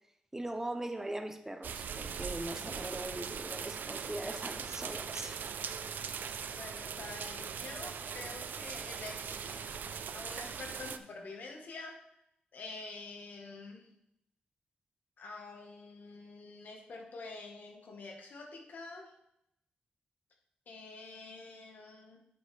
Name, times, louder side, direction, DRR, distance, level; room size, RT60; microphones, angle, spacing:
voice 1, 0.3-5.4, right 1 dB, 15° right, 0.7 m, -40 dB
sound 1, 1.6-11.0, right 7 dB, 75° right, 0.5 m, -40 dB
voice 2, 6.5-9.8 10.1-12.0 12.5-13.9 15.2-19.1 20.7-22.2, left 3 dB, 70° left, 1.5 m, -47 dB
7.9 x 7.7 x 3.4 m
wide cardioid pair, 110°, 3 cm